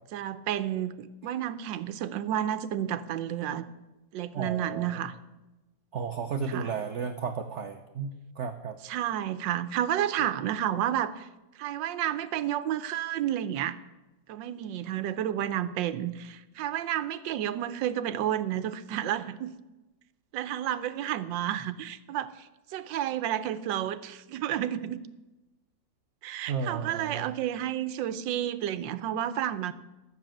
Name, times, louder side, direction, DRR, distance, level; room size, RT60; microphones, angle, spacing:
voice 1, 0.1-3.6 4.1-5.1 6.5-6.7 8.8-11.3 11.5-13.8 14.3-19.5 20.3-25.0 26.2-29.7, right 11 dB, 90° right, 13 dB, 1.4 m, -31 dB
voice 2, 4.3-4.9 5.9-8.8 26.5-27.3, right 5 dB, 55° right, 6 dB, 0.9 m, -33 dB
13.5 x 6.8 x 9.0 m, 1.1 s
omnidirectional pair, 1.9 m